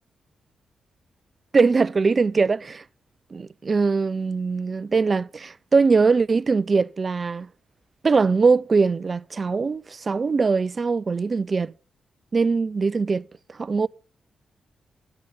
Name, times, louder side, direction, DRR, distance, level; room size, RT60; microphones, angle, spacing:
voice 1, 1.5-2.8 3.3-7.5 8.0-11.7 12.3-13.2 13.6-13.9, right 4 dB, 45° right, 0.5 m, -21 dB
11.5 x 7.7 x 5.4 m
supercardioid pair, 55°, 0 cm